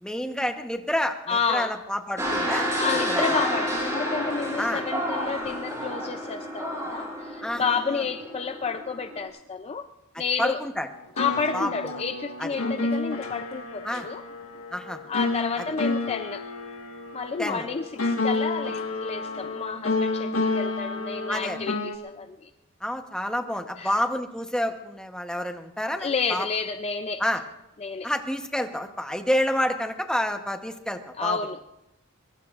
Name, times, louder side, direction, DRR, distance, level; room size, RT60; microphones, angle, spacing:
voice 1, 0.0-2.7 3.1-3.2 4.6-4.8 7.4-8.0 10.4-10.9 11.5-11.9 12.4-12.5 13.8-14.1 14.7-15.0 17.4-17.7 21.3-21.6 22.8-26.5 27.2-27.4 28.0-31.4, left 1 dB, 5° left, 5 dB, 0.9 m, -29 dB
voice 2, 1.3-1.8 2.8-9.9 10.2-10.6 11.2-14.2 15.1-16.4 17.1-22.5 23.8-23.9 26.0-27.2 27.8-28.1 31.2-31.6, left 5 dB, 30° left, 8 dB, 0.4 m, -30 dB
sound 1, 2.2-9.2, equal, 15° right, 5.1 m, -30 dB
sound 2, 10.9-21.9, left 3 dB, 80° left, 1.5 m, -30 dB
23.5 x 22.5 x 2.5 m, 0.94 s
head